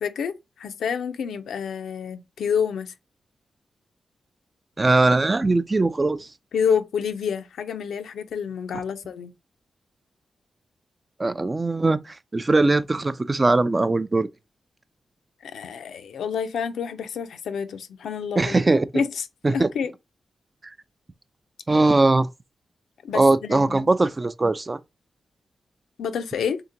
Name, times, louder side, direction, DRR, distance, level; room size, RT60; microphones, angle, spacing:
voice 1, 0.0-2.9 6.5-9.3 15.4-18.6 18.9-19.9 23.0-23.9 26.0-26.6, left 7 dB, 85° left, 0.5 m, -28 dB
voice 2, 4.8-6.3 11.2-14.3 18.4-18.8 19.4-19.7 21.7-22.3 23.1-24.8, right 2 dB, 30° right, 0.4 m, -20 dB
3.5 x 2.8 x 3.8 m
cardioid pair, 55°, 0 cm